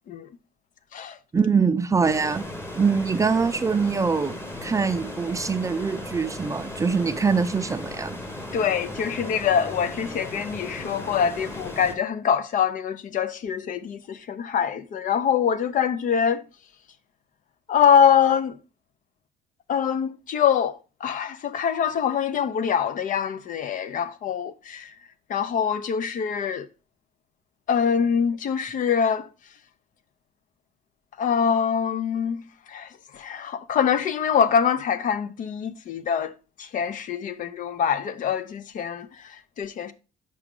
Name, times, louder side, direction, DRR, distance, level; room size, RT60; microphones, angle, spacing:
voice 1, 1.3-2.4 2.7-8.2, right 5 dB, 20° right, 0.5 m, -23 dB
sound 1, 2.0-11.9, left 1 dB, 15° left, 1.1 m, -36 dB
voice 2, 8.5-16.4 17.7-18.6 19.7-24.9 25.3-26.7 27.7-29.3 31.2-36.3 36.6-39.9, left 7 dB, 50° left, 0.6 m, -24 dB
5.9 x 4.9 x 3.6 m
cardioid pair, 110°, 17 cm